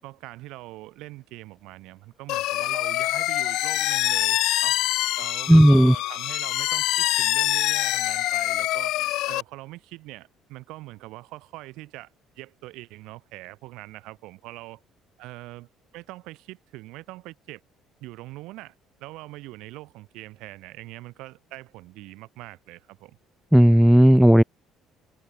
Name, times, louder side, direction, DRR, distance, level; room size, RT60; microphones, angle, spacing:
voice 1, 0.0-4.8 5.2-9.0 9.3-12.1 12.4-14.8 15.2-17.6 18.0-18.7 19.0-23.2, right 19 dB, 80° right, 7.3 m, -42 dB
sound 1, 2.3-9.4, left 16 dB, 70° left, 0.8 m, -25 dB
voice 2, 5.5-5.9 23.5-24.4, equal, ahead, 0.7 m, -13 dB
cardioid pair, 135°, 0 cm